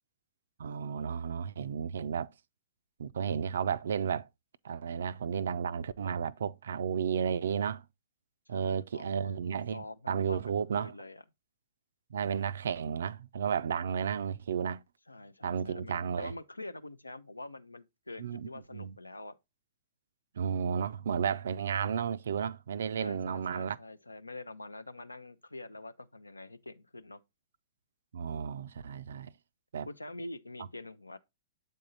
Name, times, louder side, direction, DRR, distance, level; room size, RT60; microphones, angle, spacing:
voice 1, 0.6-2.3 3.0-4.3 4.6-7.8 8.5-10.9 12.1-14.8 15.4-16.3 18.2-18.9 20.4-23.8 28.1-29.3 29.7-29.9, right 7 dB, 60° right, 0.3 m, -33 dB
voice 2, 8.5-9.3 9.7-11.2 15.1-19.4 23.0-27.2 29.9-31.2, left 2 dB, 85° left, 0.5 m, -45 dB
7.8 x 3.6 x 3.9 m
figure-of-eight pair, 110°, 0 cm